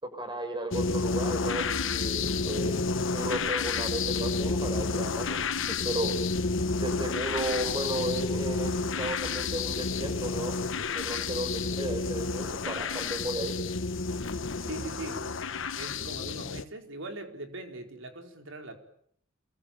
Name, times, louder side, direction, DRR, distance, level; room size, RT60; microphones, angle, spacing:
voice 1, 0.0-6.1 6.7-10.5 10.9-13.5, right 1 dB, 25° right, 6 dB, 6.8 m, -34 dB
sound 1, 0.7-16.6, left 4 dB, 65° left, 1.2 m, -30 dB
voice 2, 14.6-15.4 15.7-18.8, right 2 dB, 65° right, 5 dB, 4.6 m, -41 dB
28.0 x 23.5 x 9.0 m, 0.68 s
head